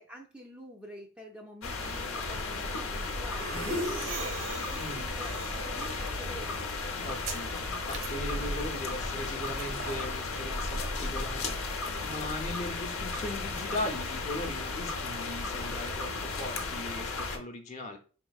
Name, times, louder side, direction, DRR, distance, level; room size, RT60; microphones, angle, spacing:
voice 1, 0.0-6.6, equal, 5° right, 0 dB, 0.4 m, -47 dB
sound 1, 1.6-17.4, left 3 dB, 80° left, 0.8 m, -35 dB
sound 2, 2.3-11.8, right 1 dB, 80° right, 0.9 m, -39 dB
voice 2, 7.0-18.0, left 1 dB, 35° left, 5 dB, 0.7 m, -39 dB
5.1 x 3.7 x 2.3 m, 0.39 s
head